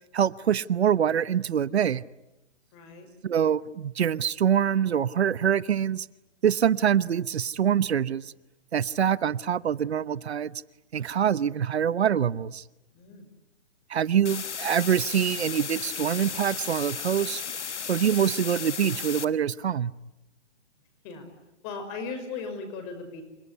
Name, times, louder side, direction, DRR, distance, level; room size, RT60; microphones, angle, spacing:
voice 1, 0.1-2.0 3.2-6.1 6.4-8.3 8.7-10.6 10.9-12.6 13.9-17.4 17.9-19.9, right 9 dB, 65° right, 18 dB, 1.0 m, -25 dB
voice 2, 2.7-3.1 12.9-13.3 21.0-21.3 21.6-23.2, left 4 dB, 25° left, 7 dB, 5.9 m, -37 dB
sound 1, 14.2-19.2, left 7 dB, 80° left, 1.6 m, -35 dB
29.0 x 17.5 x 9.8 m, 0.95 s
hypercardioid pair, 155°, 34 cm